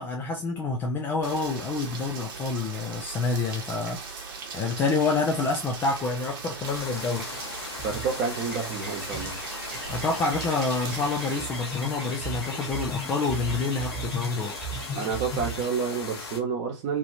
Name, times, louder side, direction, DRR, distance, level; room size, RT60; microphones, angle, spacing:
voice 1, 0.0-7.3 9.9-14.5, left 3 dB, 15° left, 0.4 m, -28 dB
Rain, 1.2-11.4, right 5 dB, 45° right, 0.9 m, -39 dB
sound 1, 6.6-16.4, left 4 dB, 55° left, 1.1 m, -39 dB
sound 2, 7.0-15.7, right 1 dB, 5° right, 1.4 m, -37 dB
voice 2, 7.8-9.4 14.9-17.0, right 5 dB, 30° right, 1.1 m, -29 dB
2.9 x 2.8 x 2.8 m
figure-of-eight pair, 120°, 15 cm